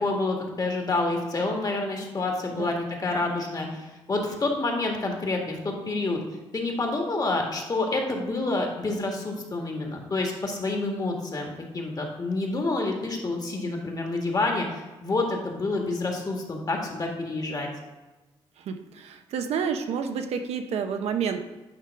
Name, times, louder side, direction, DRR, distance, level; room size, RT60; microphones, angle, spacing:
voice 1, 0.0-6.2 6.5-17.7, left 2 dB, 35° left, 1 dB, 1.7 m, -28 dB
voice 2, 18.6-21.4, right 6 dB, 80° right, 6 dB, 0.7 m, -29 dB
9.4 x 3.2 x 5.8 m, 1.1 s
cardioid pair, 85°, 11 cm